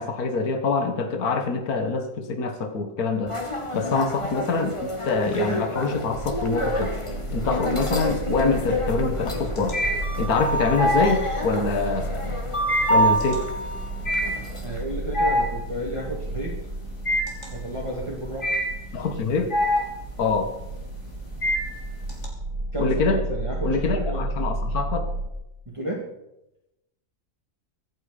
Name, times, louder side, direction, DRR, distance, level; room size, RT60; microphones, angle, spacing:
voice 1, 0.0-3.4 3.7-6.9 7.3-9.8 10.2-12.4 12.9-13.4 18.9-19.5 20.2-20.5 22.8-23.2 23.6-25.0, left 4 dB, 70° left, 6 dB, 2.0 m, -25 dB
sound 1, 3.3-14.8, equal, 20° left, 1.7 m, -28 dB
sound 2, 6.2-25.3, right 2 dB, 85° right, 3.3 m, -33 dB
sound 3, 6.8-7.4 7.8-22.3, equal, 45° left, 3.6 m, -27 dB
voice 2, 14.6-16.6 17.5-18.5 18.9-19.1 22.7-24.3 25.7-26.1, right 1 dB, 20° right, -4 dB, 2.6 m, -32 dB
24.0 x 9.2 x 5.2 m, 0.88 s
omnidirectional pair, 1.7 m